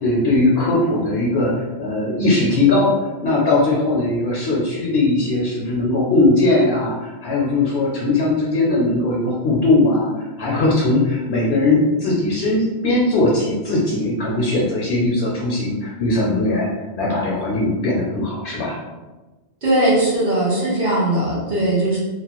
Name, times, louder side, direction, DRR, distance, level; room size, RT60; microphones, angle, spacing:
voice 1, 0.0-16.7 17.0-18.8, left 2 dB, 65° left, -4 dB, 0.8 m, -19 dB
voice 2, 19.6-22.0, right 1 dB, 45° right, -6 dB, 1.0 m, -19 dB
2.9 x 2.1 x 2.9 m, 1.2 s
omnidirectional pair, 1.2 m